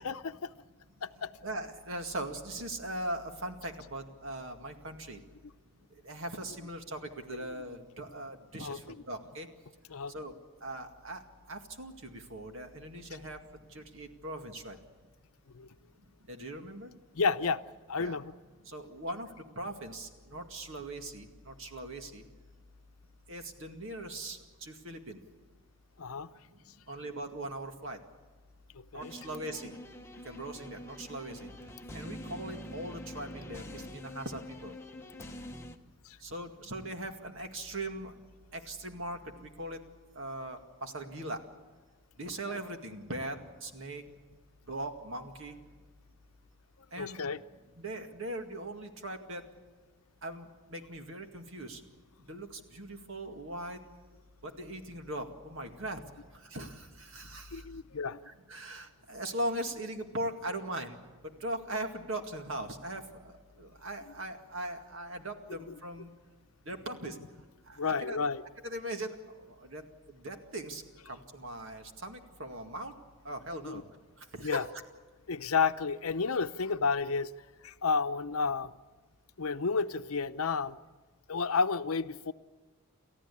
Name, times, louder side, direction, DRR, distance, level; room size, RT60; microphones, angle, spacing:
voice 1, 0.0-0.5 1.0-1.3 8.6-8.8 9.9-10.1 15.5-15.7 17.1-17.6 17.9-18.3 26.0-26.3 28.7-29.1 36.0-36.2 42.5-42.6 47.0-47.4 57.5-58.2 67.8-68.4 73.6-73.8 74.4-74.6 75.3-77.3 77.6-78.7 79.4-80.8 81.3-82.3, left 5 dB, 80° left, 11 dB, 0.7 m, -31 dB
voice 2, 1.4-5.2 6.0-9.5 10.1-10.4 10.6-11.2 11.5-13.4 13.7-14.8 16.3-16.9 18.0-18.2 18.7-19.3 19.6-22.2 23.3-25.2 26.9-28.0 28.9-29.7 30.2-31.5 31.9-34.7 36.2-38.2 38.5-39.8 40.2-41.4 42.2-44.0 44.7-45.6 46.9-47.2 47.8-49.4 50.2-51.8 52.3-53.8 54.4-56.0 56.4-57.6 58.3-61.0 61.2-66.1 66.7-67.2 67.7-68.2 68.6-69.2 69.5-69.8 70.1-70.8 71.1-72.9 73.2-73.8 74.2-74.6, right 1 dB, 60° right, 5 dB, 2.1 m, -40 dB
sound 1, 29.0-35.8, left 1 dB, 10° left, 1.1 m, -45 dB
29.5 x 14.0 x 8.4 m, 1.4 s
head